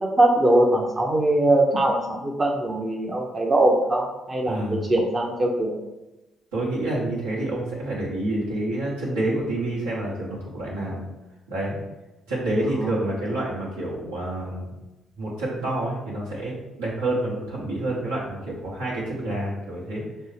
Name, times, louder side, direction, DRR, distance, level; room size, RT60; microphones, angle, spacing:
voice 1, 0.0-5.8 12.8-12.9, right 1 dB, 35° right, 0 dB, 0.6 m, -21 dB
voice 2, 4.4-4.8 6.5-11.0 11.5-11.8 12.3-14.7 15.2-20.0, right 1 dB, 85° right, -6 dB, 1.0 m, -28 dB
5.3 x 2.0 x 3.2 m, 1.0 s
hypercardioid pair, 45°, 0 cm